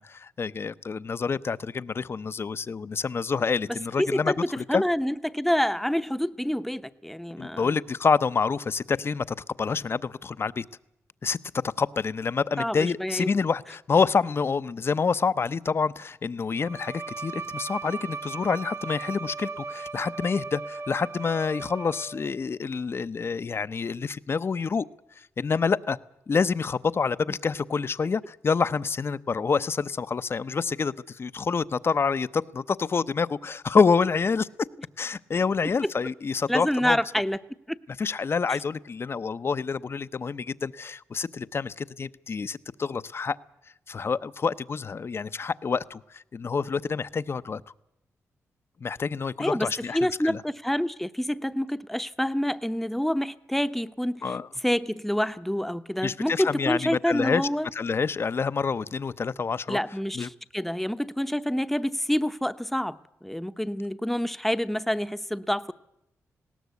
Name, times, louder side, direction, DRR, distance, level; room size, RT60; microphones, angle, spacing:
voice 1, 0.0-4.8 7.4-10.6 11.2-11.4 11.6-24.9 25.2-26.0 26.3-34.5 35.0-37.0 38.0-43.4 43.9-47.6 48.8-50.4 54.2-54.5 56.0-59.8 60.1-60.3, left 5 dB, 45° left, 0.7 m, -27 dB
voice 2, 4.0-7.7 12.6-13.3 36.5-37.4 37.7-37.8 49.4-54.4 54.6-57.7 59.7-63.0 63.2-65.7, equal, 5° left, 0.8 m, -27 dB
Bowed string instrument, 16.6-22.4, right 4 dB, 60° right, 3.2 m, -37 dB
19.5 x 17.5 x 8.3 m
cardioid pair, 80°, 6 cm